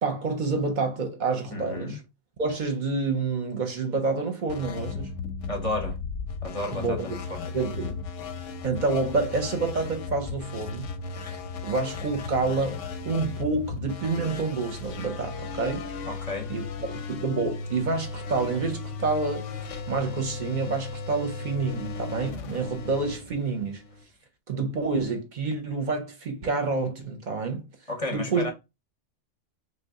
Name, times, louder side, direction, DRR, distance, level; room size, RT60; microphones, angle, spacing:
voice 1, 0.0-2.0 2.4-5.2 6.7-7.2 7.5-8.0 8.6-15.8 16.5-19.5 19.9-23.8 24.5-27.7 28.1-28.5, right 3 dB, 50° right, 0.6 m, -28 dB
voice 2, 1.5-2.0 5.4-6.0 6.4-7.5 16.0-16.5 27.9-28.5, left 1 dB, 35° left, 0.6 m, -32 dB
sound 1, 4.5-24.0, left 4 dB, 85° left, 1.0 m, -36 dB
3.2 x 2.3 x 3.4 m
omnidirectional pair, 1.3 m